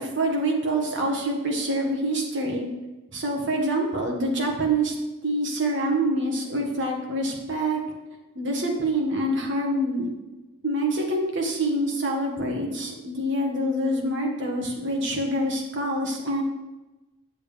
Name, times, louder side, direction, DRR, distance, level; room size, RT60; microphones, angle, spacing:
voice 1, 0.0-2.7 3.1-4.9 5.2-7.8 8.4-10.1 10.6-16.4, right 1 dB, 55° right, 0 dB, 1.6 m, -26 dB
8.7 x 7.3 x 3.5 m, 1.1 s
head